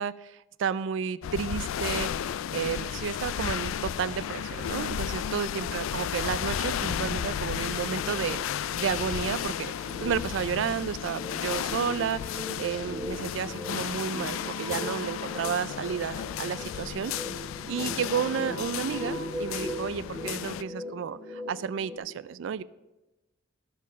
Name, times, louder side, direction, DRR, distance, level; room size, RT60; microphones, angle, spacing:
voice 1, 0.0-17.1 17.7-22.6, right 7 dB, 65° right, 16 dB, 0.3 m, -32 dB
sound 1, 1.2-20.6, left 9 dB, 85° left, 0.3 m, -33 dB
sound 2, 6.6-22.0, equal, 5° right, 2.2 m, -40 dB
13.0 x 4.6 x 6.0 m, 1.0 s
head